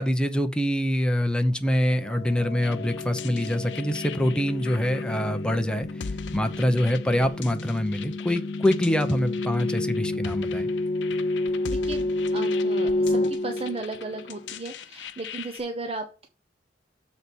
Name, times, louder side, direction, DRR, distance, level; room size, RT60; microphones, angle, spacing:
voice 1, 0.0-5.9 6.3-10.7, equal, 5° left, 6 dB, 0.7 m, -25 dB
sound 1, 1.8-14.5, left 2 dB, 40° left, 0.4 m, -30 dB
sound 2, 2.6-15.6, left 6 dB, 75° left, 0.7 m, -41 dB
voice 2, 11.7-16.3, right 3 dB, 35° right, 5 dB, 0.8 m, -35 dB
6.8 x 4.2 x 6.1 m, 0.34 s
head